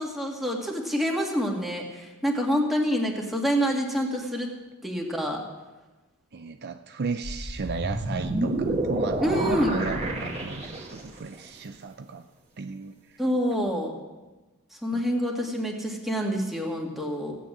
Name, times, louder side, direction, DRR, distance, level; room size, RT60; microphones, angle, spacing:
voice 1, 0.0-4.5 4.8-5.4 9.2-9.8 13.2-13.9 14.8-17.4, equal, ahead, -1 dB, 2.2 m, -27 dB
voice 2, 6.3-12.3 12.6-13.2 14.9-15.0, right 4 dB, 45° right, 7 dB, 0.5 m, -35 dB
sound 1, 7.2-11.2, right 2 dB, 30° right, 2.0 m, -29 dB
16.0 x 9.2 x 7.5 m, 1.2 s
head